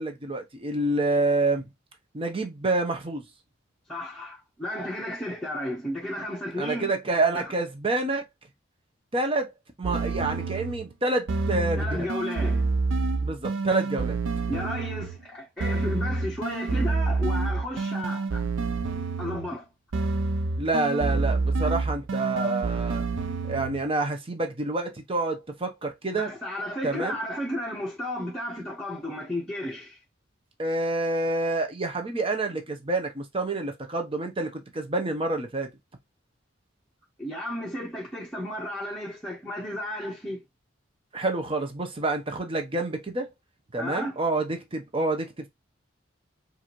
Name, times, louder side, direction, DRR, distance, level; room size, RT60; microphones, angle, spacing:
voice 1, 0.0-1.7 2.1-3.2 6.6-8.3 9.1-9.5 9.8-12.1 13.2-14.2 20.6-23.0 23.4-26.3 26.8-27.2 30.6-35.7 41.1-43.3 43.7-45.5, right 2 dB, 30° right, 0.8 m, -28 dB
voice 2, 3.9-6.9 7.3-7.5 11.8-12.6 14.5-18.4 19.2-19.7 26.1-30.0 37.2-40.4 43.8-44.2, left 1 dB, 5° left, 1.0 m, -33 dB
sound 1, 9.8-10.9 11.3-15.2 15.6-19.6 19.9-23.9, right 3 dB, 75° right, 0.5 m, -28 dB
4.7 x 2.7 x 3.0 m
head